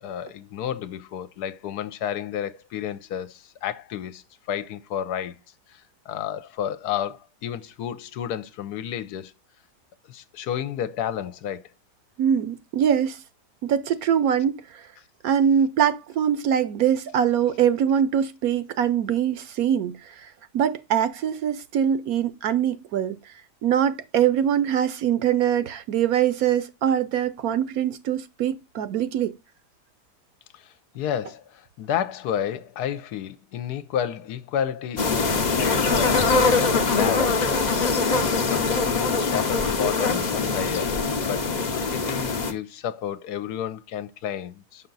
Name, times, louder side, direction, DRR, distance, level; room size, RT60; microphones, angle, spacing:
voice 1, 0.0-5.3 5.7-9.3 10.1-11.6 30.5-37.5 38.2-40.9 41.2-44.9, left 9 dB, 75° left, 1.1 m, -31 dB
voice 2, 12.2-13.2 13.6-14.8 15.2-23.2 23.6-29.3, right 9 dB, 70° right, 1.0 m, -23 dB
sound 1, 35.0-42.5, left 4 dB, 50° left, 0.5 m, -23 dB
5.9 x 5.6 x 3.9 m
omnidirectional pair, 1.8 m